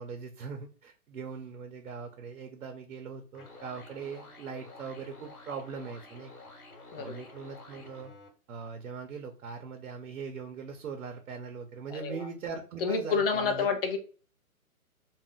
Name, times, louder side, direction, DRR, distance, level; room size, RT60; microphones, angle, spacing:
voice 1, 0.0-6.3 7.0-8.1 8.5-13.7, right 5 dB, 70° right, 4 dB, 0.7 m, -40 dB
sound 1, 3.3-8.3, left 2 dB, 80° left, 1.2 m, -50 dB
voice 2, 6.9-7.3 11.9-12.3 12.8-14.0, left 5 dB, 40° left, 5 dB, 0.6 m, -29 dB
2.5 x 2.1 x 3.4 m, 0.39 s
hypercardioid pair, 155°, 44 cm